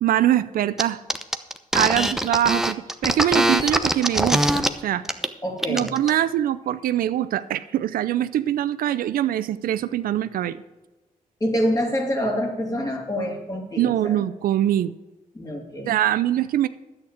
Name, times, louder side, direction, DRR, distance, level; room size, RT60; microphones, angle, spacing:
voice 1, 0.0-1.0 1.7-5.0 5.7-10.6 13.8-14.9 15.9-16.7, right 11 dB, 85° right, 14 dB, 0.5 m, -23 dB
sound 1, 0.8-0.9 1.1-4.7 5.0-5.3 5.6-6.1, right 1 dB, 5° right, 0.8 m, -22 dB
voice 2, 5.4-5.9 11.4-14.2 15.3-15.9, equal, 25° left, 1 dB, 3.0 m, -26 dB
10.5 x 8.7 x 5.0 m, 1.1 s
cardioid pair, 60°, 14 cm